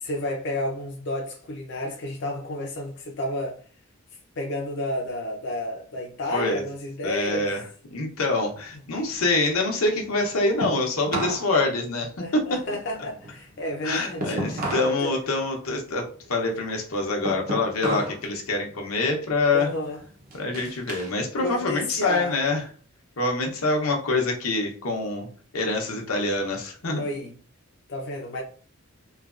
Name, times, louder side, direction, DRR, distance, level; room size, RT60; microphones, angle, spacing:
voice 1, 0.0-3.6 4.4-7.5 12.2-14.8 15.0-15.1 16.9-17.0 19.5-20.0 21.4-22.4 26.8-27.3 27.9-28.4, left 1 dB, 55° left, 0.5 m, -31 dB
voice 2, 6.3-6.6 7.0-7.6 7.9-12.6 13.8-16.0 16.3-19.7 20.3-22.7 23.2-25.3 25.5-27.0, left 2 dB, 85° left, 0.7 m, -25 dB
sound 1, 8.4-11.5 11.8-15.0 15.4-18.2 18.6-19.0 19.5-21.2 21.5-22.7, right 1 dB, 45° right, 0.7 m, -34 dB
3.2 x 2.2 x 2.4 m
head